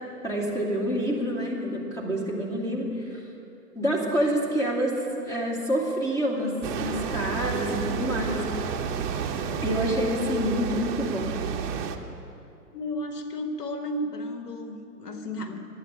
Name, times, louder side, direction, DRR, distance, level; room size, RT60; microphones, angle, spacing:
voice 1, 0.2-3.2 3.7-8.4 9.6-11.4, equal, 5° left, -4 dB, 2.4 m, -27 dB
sound 1, 6.6-12.0, right 7 dB, 30° right, 0.9 m, -31 dB
voice 2, 12.7-15.6, left 1 dB, 90° left, 4 dB, 1.8 m, -33 dB
11.5 x 9.3 x 9.8 m, 2.7 s
hypercardioid pair, 130°, 46 cm